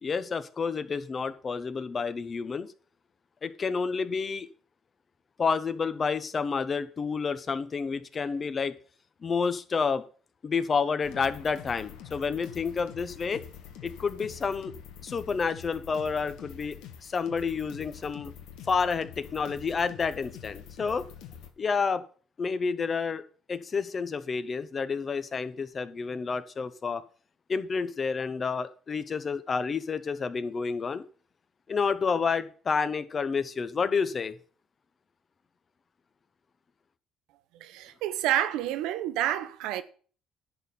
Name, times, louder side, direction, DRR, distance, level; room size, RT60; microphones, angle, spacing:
voice 1, 0.0-2.7 3.4-4.5 5.4-8.8 9.2-10.0 10.4-13.4 13.8-14.7 15.0-18.3 18.7-21.1 21.6-22.0 22.4-23.2 23.5-27.0 27.5-31.0 31.7-34.4, left 5 dB, 30° left, 0.8 m, -29 dB
sound 1, 11.0-21.5, left 9 dB, 85° left, 1.5 m, -46 dB
voice 2, 37.6-39.8, right 12 dB, 90° right, 0.8 m, -29 dB
11.0 x 4.2 x 7.0 m
cardioid pair, 120°, 0 cm